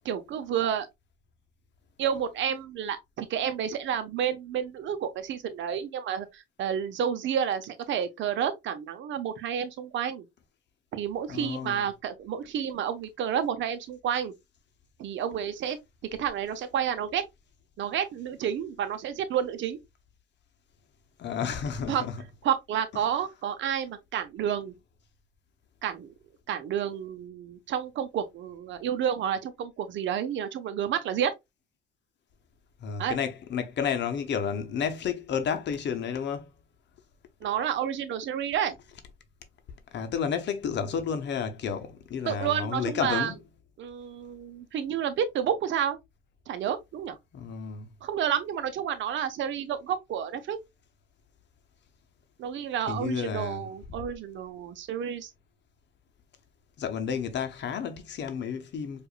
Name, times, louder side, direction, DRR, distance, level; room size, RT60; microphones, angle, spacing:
voice 1, 0.0-0.9 2.0-10.2 10.9-14.3 15.0-15.8 16.2-17.2 17.8-19.8 21.9-22.0 22.4-24.7 25.8-26.1 26.5-31.3 33.0-33.2 37.4-38.8 42.3-43.3 43.8-46.0 46.5-47.2 48.0-50.6 52.4-55.3, right 9 dB, 70° right, 0.7 m, -30 dB
voice 2, 11.3-11.9 21.2-22.2 32.8-36.5 39.9-43.4 47.3-47.9 52.9-53.7 56.8-59.1, left 7 dB, 60° left, 0.7 m, -31 dB
4.7 x 2.5 x 2.3 m
cardioid pair, 90°, 20 cm